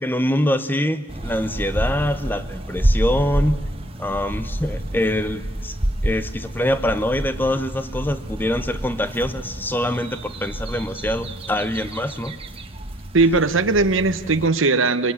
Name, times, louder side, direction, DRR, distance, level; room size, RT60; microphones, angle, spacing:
voice 1, 0.0-3.7 4.0-5.8 6.0-12.4, left 1 dB, 10° left, 12 dB, 1.0 m, -24 dB
sound 1, 1.1-14.5, right 1 dB, 30° right, 1.4 m, -28 dB
voice 2, 13.1-15.1, right 3 dB, 85° right, 11 dB, 1.1 m, -18 dB
23.0 x 23.0 x 9.7 m, 1.4 s
head